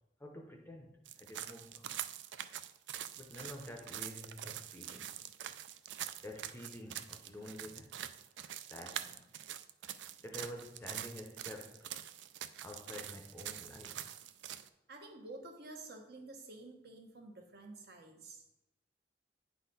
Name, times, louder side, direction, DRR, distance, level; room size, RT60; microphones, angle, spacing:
voice 1, 0.2-1.8 3.2-5.1 6.2-7.9 8.7-9.3 10.2-11.9 12.6-14.0, left 1 dB, 15° left, 0.6 m, -49 dB
sound 1, 1.1-14.7, right 11 dB, 80° right, 0.4 m, -45 dB
voice 2, 14.9-18.4, right 2 dB, 65° right, 1.1 m, -50 dB
9.4 x 4.1 x 3.9 m
head